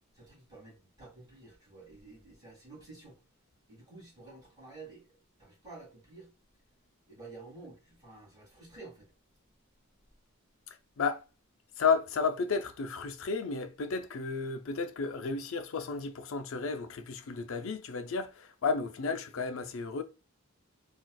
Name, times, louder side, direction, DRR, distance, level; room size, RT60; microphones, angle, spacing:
voice 1, 0.1-3.2 3.7-5.1 5.4-6.3 7.1-9.1, right 3 dB, 20° right, 1.8 m, -51 dB
voice 2, 11.8-20.0, left 5 dB, 65° left, 0.4 m, -32 dB
3.9 x 2.4 x 2.2 m
head